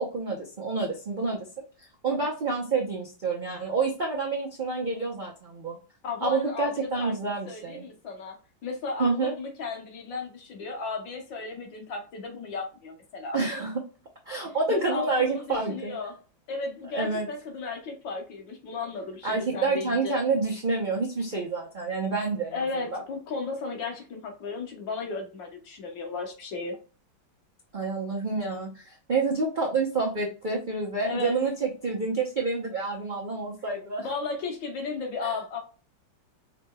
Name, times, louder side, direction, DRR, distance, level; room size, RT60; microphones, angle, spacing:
voice 1, 0.0-1.5 1.8-5.8 6.2-7.8 9.0-9.3 13.3-13.7 14.3-15.9 16.9-17.3 19.2-22.5 22.9-23.0 27.7-34.1 35.2-35.3, right 4 dB, 85° right, -2 dB, 0.4 m, -28 dB
voice 2, 6.0-7.1 7.4-8.4 8.6-13.4 14.7-16.1 16.5-20.2 22.5-26.8 31.0-31.3 34.0-35.6, left 4 dB, 75° left, 2 dB, 1.7 m, -34 dB
5.0 x 3.0 x 2.2 m, 0.35 s
omnidirectional pair, 2.0 m